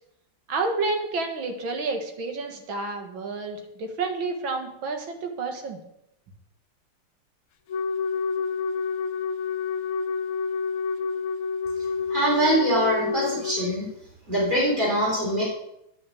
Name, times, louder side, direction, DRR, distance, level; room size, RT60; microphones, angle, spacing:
voice 1, 0.5-5.8, right 3 dB, 65° right, 4 dB, 2.3 m, -30 dB
Wind instrument woodwind instrument, 7.7-13.8, left 5 dB, 80° left, 1.7 m, -28 dB
voice 2, 12.1-13.9 14.3-15.4, right 1 dB, 20° right, -5 dB, 4.8 m, -23 dB
9.9 x 6.2 x 8.5 m, 0.79 s
omnidirectional pair, 2.4 m